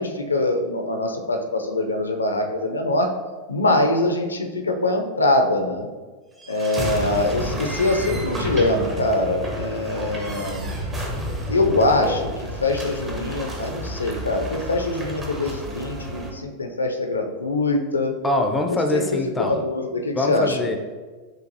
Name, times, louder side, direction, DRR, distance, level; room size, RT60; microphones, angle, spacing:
voice 1, 0.0-3.1 3.5-5.9 6.5-10.7 11.5-18.1 18.7-19.0 19.4-20.6, left 2 dB, 75° left, 4 dB, 0.4 m, -23 dB
sound 1, 6.4-16.3, equal, 20° right, 0.7 m, -31 dB
voice 2, 18.2-19.6 20.1-20.8, left 2 dB, 15° left, 4 dB, 0.4 m, -23 dB
6.2 x 2.5 x 2.6 m, 1.4 s
figure-of-eight pair, 90°, 0 cm